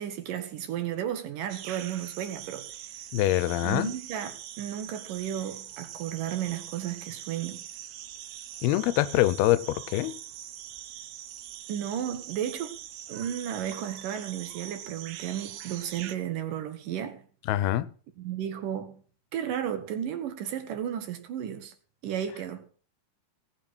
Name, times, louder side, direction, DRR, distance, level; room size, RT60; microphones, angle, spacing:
voice 1, 0.0-2.7 3.6-7.6 11.7-12.8 13.1-17.2 18.2-19.0 19.3-21.7 22.0-22.6, right 10 dB, 65° right, 2.7 m, -33 dB
sound 1, 1.5-16.2, right 11 dB, 90° right, 2.9 m, -43 dB
voice 2, 3.1-3.9 8.6-10.2 17.5-17.9, left 15 dB, 90° left, 2.7 m, -24 dB
17.5 x 6.5 x 6.2 m
omnidirectional pair, 4.4 m